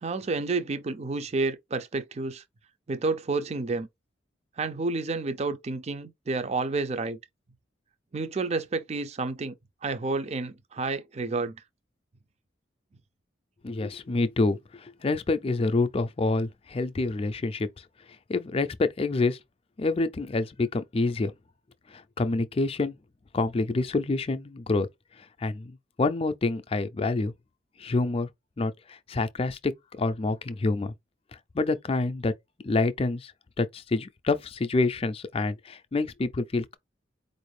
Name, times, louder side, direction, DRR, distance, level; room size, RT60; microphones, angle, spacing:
voice 1, 0.0-2.4 2.9-3.9 4.6-7.2 8.1-9.5 9.8-11.6, right 3 dB, 35° right, 0.4 m, -30 dB
voice 2, 13.6-17.7 18.3-19.4 19.8-21.3 21.9-22.9 23.3-24.9 25.4-27.3 27.8-28.3 28.6-30.9 31.5-32.3 32.6-33.3 33.6-36.8, left 3 dB, 30° left, 0.4 m, -27 dB
4.4 x 2.6 x 3.2 m
head